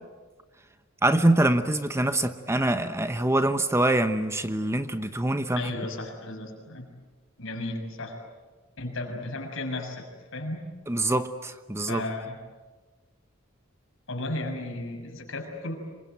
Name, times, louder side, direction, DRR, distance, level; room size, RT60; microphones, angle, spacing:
voice 1, 1.0-5.7 10.9-12.0, right 1 dB, 15° right, 9 dB, 0.9 m, -24 dB
voice 2, 5.6-6.9 7.4-8.2 8.8-10.1 10.3-10.6 11.8-12.4 14.1-15.7, left 2 dB, 65° left, 3 dB, 6.4 m, -34 dB
26.5 x 24.0 x 9.1 m, 1.3 s
head